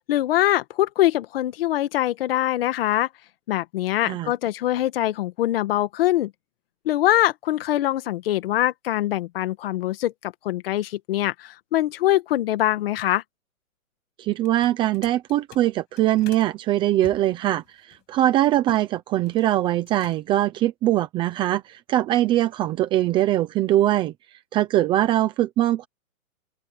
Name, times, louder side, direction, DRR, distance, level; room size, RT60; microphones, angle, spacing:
voice 1, 0.1-3.1 3.5-6.3 6.9-13.2, left 14 dB, 40° left, 1.8 m, -23 dB
voice 2, 14.2-24.1 24.5-25.9, right 14 dB, 10° right, 0.8 m, -22 dB
sound 1, 14.4-16.5 17.0-18.9 19.1-19.5 19.8-20.4, left 19 dB, 25° left, 7.7 m, -47 dB
open air
hypercardioid pair, 160°, 43 cm